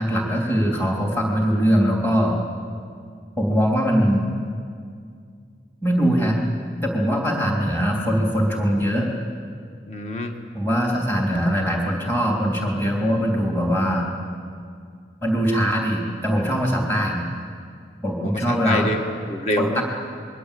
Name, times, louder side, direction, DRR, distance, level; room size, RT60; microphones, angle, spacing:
voice 1, 0.0-2.4 3.4-4.3 5.8-6.4 6.8-9.1 10.5-14.1 15.2-17.3 18.0-18.9 19.6-19.8, equal, 15° left, -1 dB, 3.3 m, -21 dB
voice 2, 9.9-10.3 18.2-19.8, left 1 dB, 40° left, 4 dB, 1.6 m, -27 dB
26.5 x 22.5 x 8.5 m, 2.2 s
head